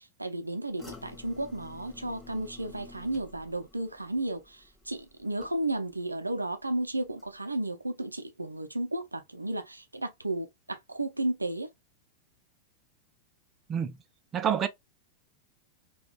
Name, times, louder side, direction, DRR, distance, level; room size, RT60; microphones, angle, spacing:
voice 1, 0.0-11.7, right 1 dB, 85° right, 0.5 m, -33 dB
sound 1, 0.8-6.0 6.3-6.8 7.2-7.3, left 3 dB, 5° left, 1.1 m, -51 dB
voice 2, 14.3-14.7, right 8 dB, 25° right, 0.5 m, -27 dB
3.7 x 2.2 x 2.3 m
figure-of-eight pair, 90°, 0 cm